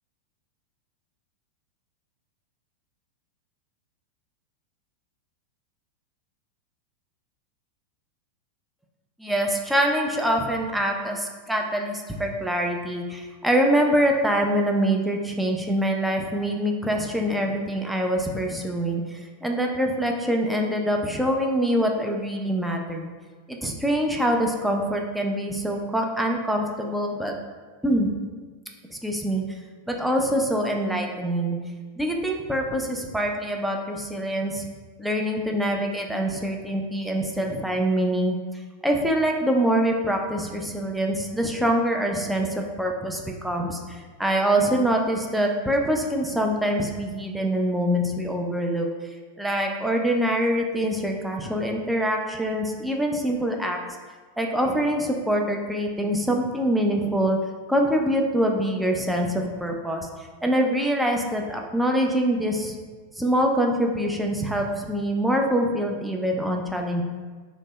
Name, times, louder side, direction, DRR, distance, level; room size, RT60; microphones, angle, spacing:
voice 1, 9.2-23.1 23.5-27.3 27.8-28.1 28.9-29.4 29.9-31.6 32.0-34.7 35.0-38.4 38.8-48.9 49.4-53.8 54.4-57.4 57.7-60.1 60.4-62.8 63.2-67.0, equal, 5° right, 1 dB, 0.4 m, -24 dB
2.8 x 2.0 x 3.6 m, 1.4 s
figure-of-eight pair, 90°, 0 cm